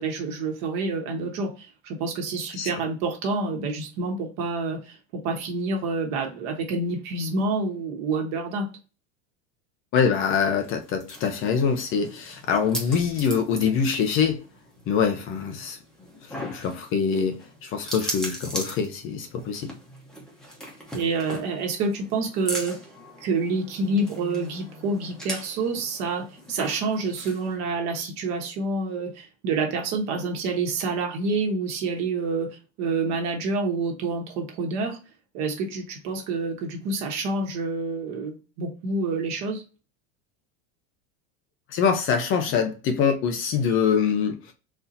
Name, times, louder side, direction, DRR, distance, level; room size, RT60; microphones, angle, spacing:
voice 1, 0.0-8.7 20.9-22.8 23.2-35.0 35.3-39.6, right 3 dB, 50° right, 1.3 m, -28 dB
voice 2, 9.9-14.4 14.9-15.8 16.4-19.7 41.7-44.5, left 6 dB, 35° left, 0.6 m, -24 dB
sound 1, 10.6-27.6, equal, ahead, 0.9 m, -39 dB
4.1 x 2.8 x 2.6 m
supercardioid pair, 150°, 35 cm